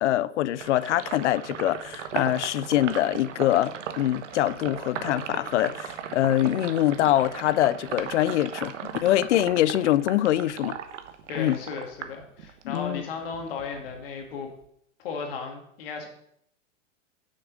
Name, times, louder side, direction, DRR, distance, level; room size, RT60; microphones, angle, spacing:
voice 1, 0.0-8.8 9.0-10.8 11.4-11.6 12.6-13.0, left 13 dB, 65° left, 0.5 m, -24 dB
Sink (filling or washing), 0.6-12.9 13.2-14.6, right 8 dB, 75° right, 1.1 m, -37 dB
voice 2, 11.3-14.5 15.0-16.1, left 5 dB, 50° left, 2.1 m, -35 dB
7.3 x 6.5 x 6.2 m
supercardioid pair, 170°, 37 cm